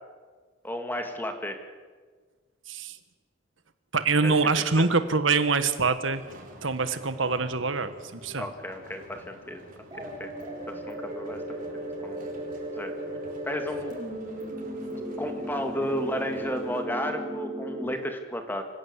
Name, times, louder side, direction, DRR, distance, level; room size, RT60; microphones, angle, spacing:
voice 1, 0.6-1.6 4.2-4.3 4.8-4.9 8.4-10.3 10.7-12.3 12.8-12.9 13.4-13.9 15.2-18.6, equal, 10° left, 5 dB, 2.2 m, -33 dB
voice 2, 2.7-3.0 3.9-6.2 6.6-8.5, right 4 dB, 70° right, 11 dB, 1.5 m, -25 dB
sound 1, 6.1-16.8, equal, 45° right, 4.3 m, -48 dB
sound 2, 9.9-17.9, right 1 dB, 20° right, 4.9 m, -36 dB
26.0 x 15.5 x 8.1 m, 1.5 s
head